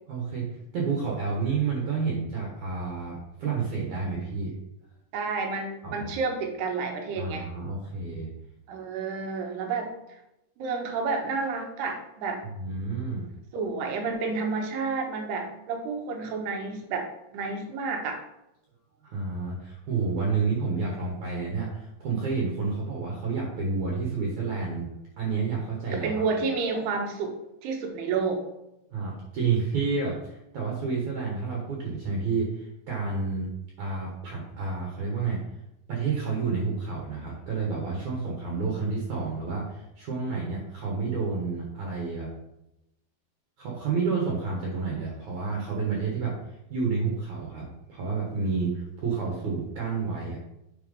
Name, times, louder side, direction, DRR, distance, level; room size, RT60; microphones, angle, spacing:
voice 1, 0.1-4.6 5.8-6.1 7.2-8.3 12.6-13.3 19.0-24.9 25.2-26.2 28.9-33.5 33.8-35.4 35.9-42.3 43.6-50.4, right 4 dB, 60° right, -2 dB, 2.3 m, -30 dB
voice 2, 5.1-7.5 8.7-9.9 10.6-12.4 13.5-18.2 25.9-27.3 27.6-28.4, right 4 dB, 85° right, 3 dB, 3.3 m, -30 dB
8.8 x 4.3 x 5.5 m, 0.87 s
omnidirectional pair, 4.6 m